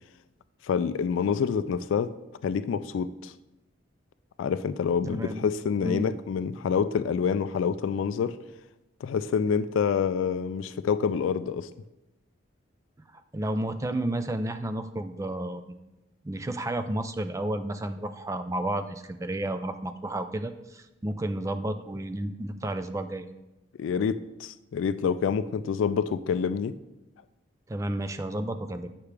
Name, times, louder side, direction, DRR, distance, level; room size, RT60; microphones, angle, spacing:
voice 1, 0.6-2.1 2.4-3.3 4.4-8.4 9.0-11.7 23.8-26.7, left 6 dB, 85° left, 0.3 m, -27 dB
voice 2, 5.1-5.5 5.8-6.1 13.1-15.6 16.2-23.3 27.7-28.9, right 1 dB, 15° right, 0.3 m, -32 dB
8.3 x 5.8 x 3.3 m
head